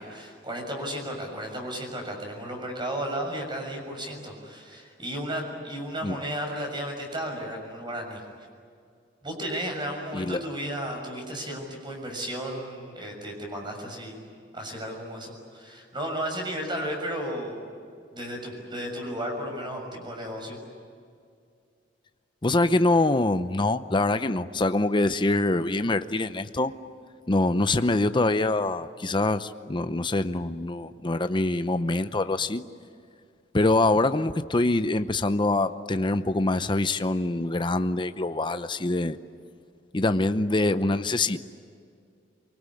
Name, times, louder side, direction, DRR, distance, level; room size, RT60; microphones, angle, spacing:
voice 1, 0.0-8.2 9.2-14.2 14.5-17.6 18.1-20.6, equal, 25° right, 2 dB, 6.5 m, -34 dB
voice 2, 22.4-26.7 27.3-32.6 33.5-39.2 39.9-41.4, left 2 dB, 25° left, 10 dB, 0.7 m, -24 dB
24.0 x 24.0 x 9.9 m, 2.3 s
head